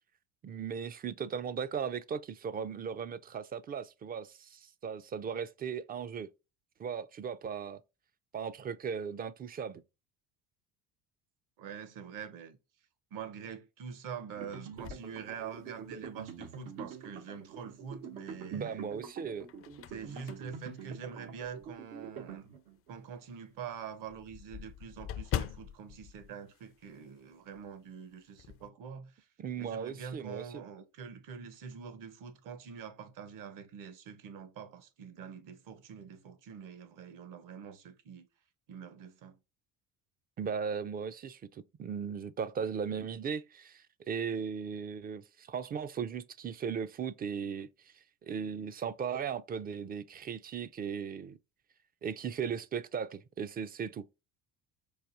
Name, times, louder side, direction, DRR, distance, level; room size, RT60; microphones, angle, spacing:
voice 1, 0.4-6.3 6.8-7.8 8.3-9.8 18.5-19.5 29.4-30.6 40.4-51.4 52.0-54.0, right 7 dB, 25° right, 0.3 m, -37 dB
voice 2, 11.6-12.6 13.1-18.8 19.9-22.5 22.9-29.3 29.6-38.3 38.7-39.4, right 7 dB, 60° right, 1.0 m, -45 dB
sound 1, 14.4-22.9, right 6 dB, 85° right, 1.2 m, -46 dB
sound 2, 14.8-16.1 16.6-16.7 18.2-18.7 19.2-21.8 22.3-22.4 22.8-22.9 23.2-23.3 23.5-27.3 27.5-27.8 28.1-28.7, left 10 dB, 40° left, 0.4 m, -42 dB
4.7 x 2.6 x 2.5 m
supercardioid pair, 95°, 35 cm